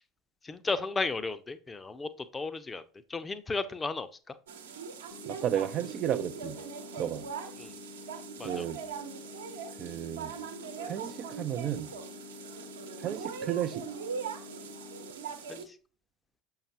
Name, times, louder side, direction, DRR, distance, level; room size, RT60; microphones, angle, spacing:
voice 1, 0.4-2.8 3.1-4.1 7.6-7.7 8.4-8.6 15.5-15.6, left 3 dB, 20° left, 0.6 m, -34 dB
sound 1, 4.5-15.7, right 6 dB, 70° right, 1.0 m, -41 dB
sound 2, 5.1-15.1, left 4 dB, 45° left, 1.0 m, -49 dB
voice 2, 5.3-6.6 7.0-7.2 8.4-8.8 9.8-10.3 10.8-11.9 13.0-13.8, right 10 dB, 40° right, 0.4 m, -33 dB
7.1 x 5.6 x 2.9 m
figure-of-eight pair, 70°, 0 cm